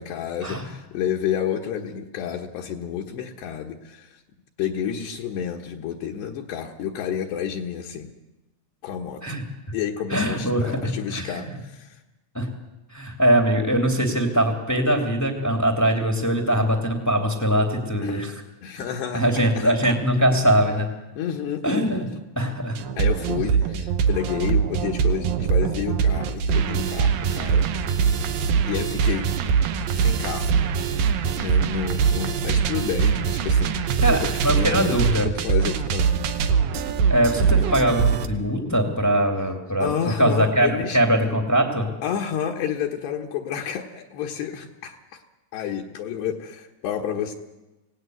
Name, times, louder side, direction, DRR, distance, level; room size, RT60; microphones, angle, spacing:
voice 1, 0.0-4.2 4.6-8.1 8.8-9.4 9.7-12.0 18.0-20.0 21.2-22.1 23.0-27.7 28.7-29.3 29.9-30.5 31.4-36.1 39.8-41.0 42.0-45.2 45.5-47.3, left 8 dB, 70° left, 1 dB, 3.2 m, -30 dB
voice 2, 10.1-11.5 12.3-12.5 12.9-18.3 19.1-20.9 21.6-22.1 22.3-22.8 34.0-35.3 37.1-41.9, right 1 dB, 5° left, 3 dB, 1.2 m, -22 dB
sound 1, 22.8-38.3, right 6 dB, 70° right, 2.2 m, -22 dB
25.5 x 18.0 x 9.5 m, 1.0 s
omnidirectional pair, 5.6 m